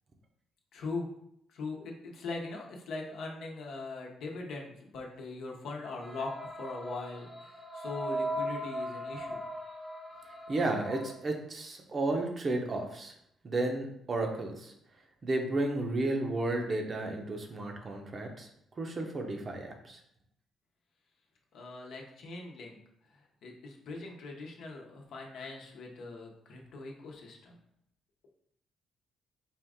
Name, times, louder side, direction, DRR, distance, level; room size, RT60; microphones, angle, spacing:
voice 1, 0.7-1.1 1.5-9.4 21.5-22.8 23.1-27.6, left 3 dB, 75° left, 0 dB, 0.8 m, -41 dB
sound 1, 6.0-11.1, equal, ahead, 0.8 m, -38 dB
voice 2, 10.5-13.1 13.4-14.7 15.2-18.5 18.8-20.0, right 2 dB, 40° right, 3 dB, 0.7 m, -33 dB
4.4 x 2.4 x 3.5 m, 0.73 s
cardioid pair, 90°, 0 cm